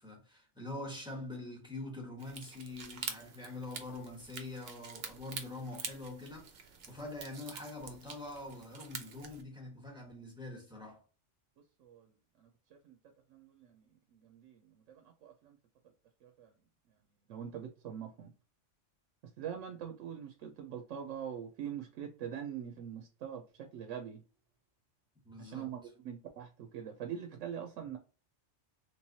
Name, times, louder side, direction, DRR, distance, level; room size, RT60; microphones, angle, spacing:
voice 1, 0.0-11.0 25.2-25.7 27.8-27.9, left 2 dB, 5° right, 0.9 m, -45 dB
sound 1, 2.2-9.4, right 6 dB, 60° right, 0.8 m, -46 dB
voice 2, 11.8-12.5 12.8-13.0 13.3-15.6 16.2-16.5 17.3-18.3 19.4-23.4 23.7-24.2 25.4-28.0, right 8 dB, 85° right, 0.9 m, -43 dB
3.2 x 3.1 x 2.7 m
omnidirectional pair, 1.3 m